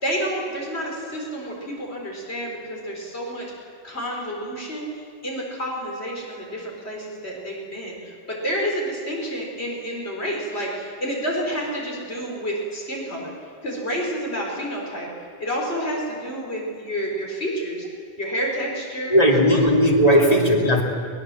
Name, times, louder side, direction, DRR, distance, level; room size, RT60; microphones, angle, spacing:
voice 1, 0.0-13.3 13.6-15.1 15.4-17.9 18.2-19.6 20.1-20.3, equal, 70° left, -1 dB, 4.4 m, -29 dB
voice 2, 19.1-20.8, equal, 35° left, -1 dB, 2.9 m, -17 dB
23.5 x 19.5 x 7.5 m, 2.3 s
omnidirectional pair, 1.1 m